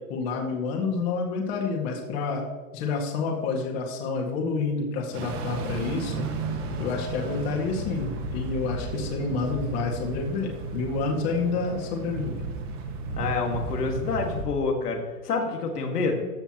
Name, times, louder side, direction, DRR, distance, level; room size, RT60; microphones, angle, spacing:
voice 1, 0.1-2.4 2.7-6.3 6.8-12.3, left 4 dB, 40° left, 1 dB, 2.0 m, -29 dB
sound 1, 5.1-14.5, right 2 dB, 55° right, 2.0 m, -34 dB
voice 2, 13.2-16.2, left 4 dB, 90° left, 1 dB, 2.0 m, -27 dB
14.0 x 6.9 x 3.0 m, 1.4 s
hypercardioid pair, 140°, 45 cm